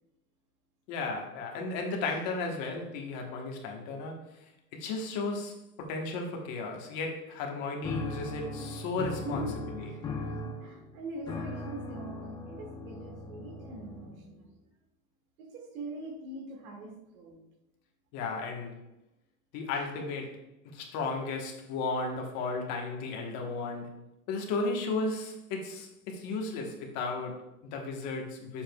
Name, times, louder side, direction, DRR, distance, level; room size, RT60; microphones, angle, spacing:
voice 1, 0.9-4.4 4.7-9.5 9.7-9.9 18.1-18.8 19.5-20.4 20.6-23.9 24.3-28.6, left 3 dB, 40° left, 1 dB, 1.3 m, -34 dB
sound 1, 7.8-14.3, left 3 dB, 10° left, 0.5 m, -38 dB
voice 2, 9.2-10.0 10.3-14.4 15.4-17.4 24.4-24.8, right 2 dB, 70° right, 1 dB, 2.2 m, -43 dB
8.6 x 7.3 x 2.3 m, 0.89 s
supercardioid pair, 155°, 44 cm